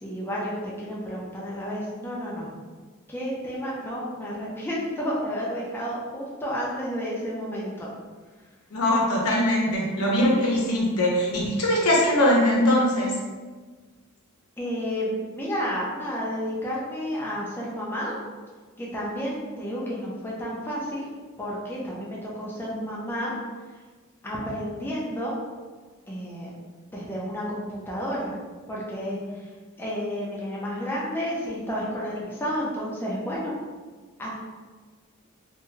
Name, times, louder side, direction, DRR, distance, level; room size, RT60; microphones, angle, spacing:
voice 1, 0.0-2.5 3.1-7.9 14.6-18.2 18.8-21.1 21.4-23.3 24.2-25.4 26.1-26.5 26.9-28.3 28.7-29.5 29.8-33.6 34.2-34.3, equal, 10° left, -5 dB, 0.5 m, -31 dB
voice 2, 8.7-13.1, left 1 dB, 90° left, -3 dB, 0.7 m, -21 dB
2.6 x 2.3 x 3.1 m, 1.4 s
head